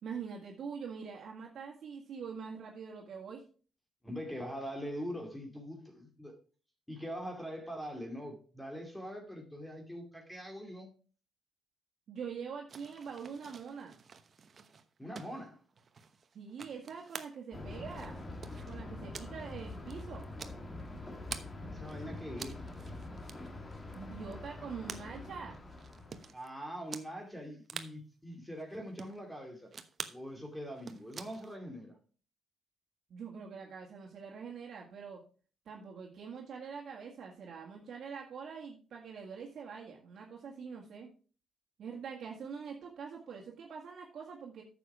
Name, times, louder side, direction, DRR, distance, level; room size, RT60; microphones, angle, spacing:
voice 1, 0.0-3.4 12.1-14.0 16.3-18.2 18.7-20.3 23.9-25.6 33.1-35.2 35.7-41.1 41.8-44.6, right 6 dB, 60° right, 1.9 m, -44 dB
voice 2, 4.0-6.4 6.9-10.9 15.0-15.6 21.7-22.6 22.8-23.0 26.3-29.7 30.1-32.0, equal, 5° left, 2.6 m, -43 dB
sound 1, 12.7-21.5 21.8-26.5 26.9-27.1 27.4-27.5 27.7-27.9 28.6-29.2 29.7-30.2 30.6-31.6, right 5 dB, 45° right, 1.0 m, -48 dB
Thunder, 17.5-26.3, left 2 dB, 25° left, 1.9 m, -45 dB
9.4 x 7.0 x 4.8 m
cardioid pair, 90°, 0 cm